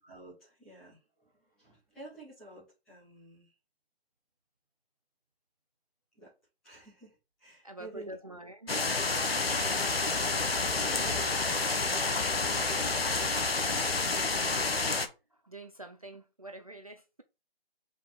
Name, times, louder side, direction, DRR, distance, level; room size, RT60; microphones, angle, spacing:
voice 1, 0.0-3.5 6.2-6.3 6.6-8.4 9.0-9.8 10.1-14.0 15.0-15.1, right 1 dB, ahead, 0.9 m, -50 dB
voice 2, 7.6-8.7 9.3-9.6 13.7-13.8 15.4-17.2, right 1 dB, 35° right, 0.5 m, -46 dB
sound 1, 8.7-15.1, left 3 dB, 75° left, 1.2 m, -29 dB
5.0 x 4.0 x 4.6 m
figure-of-eight pair, 165°, 30 cm